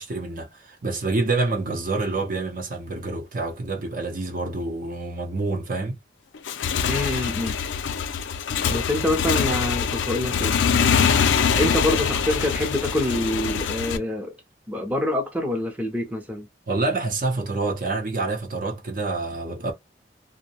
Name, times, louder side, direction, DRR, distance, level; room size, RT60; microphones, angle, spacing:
voice 1, 0.0-6.0 16.7-19.7, right 3 dB, 50° right, 0.7 m, -27 dB
Motorcycle / Engine, 6.3-14.0, left 7 dB, 80° left, 0.4 m, -23 dB
voice 2, 6.9-7.5 8.7-10.6 11.6-14.3 14.7-16.5, left 1 dB, 10° right, 0.6 m, -26 dB
2.6 x 2.1 x 2.8 m
head